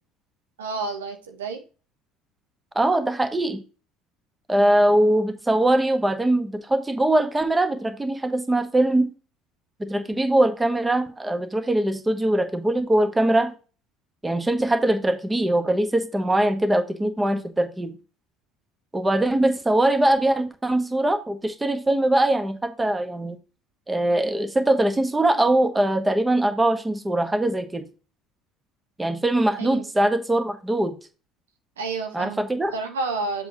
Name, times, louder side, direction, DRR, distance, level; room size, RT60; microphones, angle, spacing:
voice 1, 0.6-1.6 29.6-29.8 31.8-32.4 32.7-33.5, right 3 dB, 80° right, 1.1 m, -30 dB
voice 2, 2.7-3.6 4.5-9.1 9.8-13.5 14.2-17.9 18.9-23.4 23.9-27.9 29.0-30.9 32.1-32.7, right 1 dB, 15° right, 1.2 m, -22 dB
7.6 x 5.8 x 2.9 m
hypercardioid pair, 65°, 0 cm